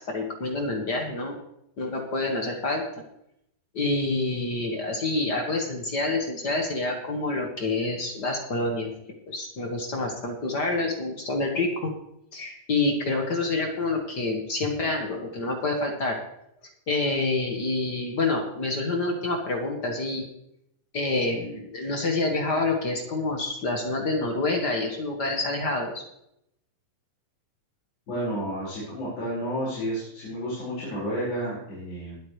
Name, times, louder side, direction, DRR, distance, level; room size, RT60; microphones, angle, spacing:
voice 1, 0.1-1.4 1.8-2.8 3.7-8.9 9.3-11.9 12.3-16.2 16.9-20.2 20.9-26.0, left 2 dB, 50° left, 1 dB, 1.3 m, -27 dB
voice 2, 28.1-32.2, equal, 75° left, -11 dB, 7.0 m, -31 dB
21.0 x 8.4 x 3.2 m, 0.78 s
omnidirectional pair, 4.1 m